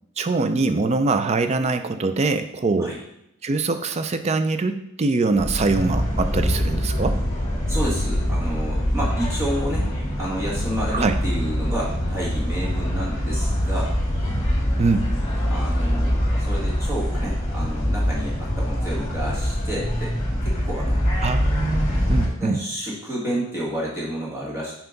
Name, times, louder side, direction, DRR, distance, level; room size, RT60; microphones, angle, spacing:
voice 1, 0.2-3.0 3.4-7.2 10.9-11.2 14.8-15.1 21.2-22.6, right 3 dB, 30° right, 9 dB, 0.3 m, -23 dB
sound 1, 5.4-22.3, equal, 30° left, 1.7 m, -24 dB
voice 2, 7.7-9.9 10.2-14.0 15.5-21.0 22.4-24.7, equal, 15° right, -6 dB, 1.7 m, -30 dB
5.6 x 4.6 x 3.9 m, 0.81 s
head